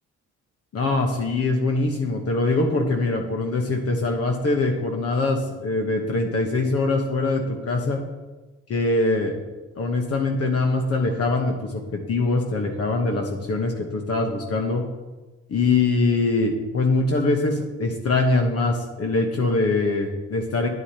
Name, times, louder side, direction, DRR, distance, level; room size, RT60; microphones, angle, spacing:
voice 1, 0.7-8.0 8.7-9.4 9.8-14.8 15.5-20.7, left 3 dB, 50° left, 2 dB, 1.1 m, -23 dB
9.3 x 8.0 x 2.9 m, 1.2 s
cardioid pair, 90°, 30 cm